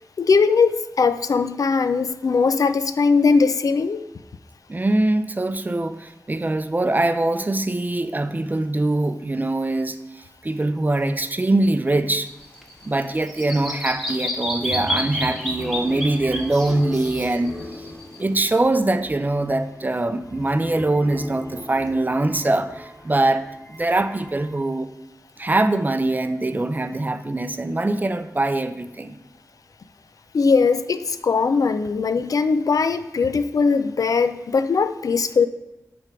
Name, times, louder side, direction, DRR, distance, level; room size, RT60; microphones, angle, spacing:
voice 1, 0.2-4.1 30.3-35.5, left 5 dB, 80° left, 11 dB, 0.4 m, -20 dB
voice 2, 4.7-12.3 12.8-17.9 18.2-24.9 25.4-29.2, right 2 dB, 30° right, 10 dB, 0.5 m, -23 dB
sound 1, 12.0-24.6, left 1 dB, 55° left, 3.0 m, -40 dB
Bird vocalization bird call bird song, 12.3-18.2, left 1 dB, 5° left, 1.4 m, -30 dB
8.8 x 3.5 x 6.0 m, 0.99 s
wide cardioid pair, 65°, 6 cm